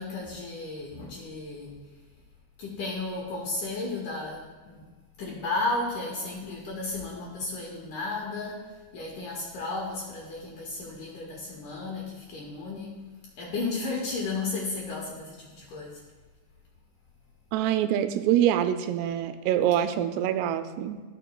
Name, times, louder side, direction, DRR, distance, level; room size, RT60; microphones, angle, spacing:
voice 1, 0.0-1.8 2.6-4.9 5.2-13.0 13.4-16.0, left 3 dB, 70° left, -1 dB, 2.0 m, -34 dB
voice 2, 17.5-21.0, right 11 dB, 90° right, 10 dB, 2.6 m, -25 dB
13.0 x 6.7 x 2.3 m, 1.4 s
omnidirectional pair, 4.7 m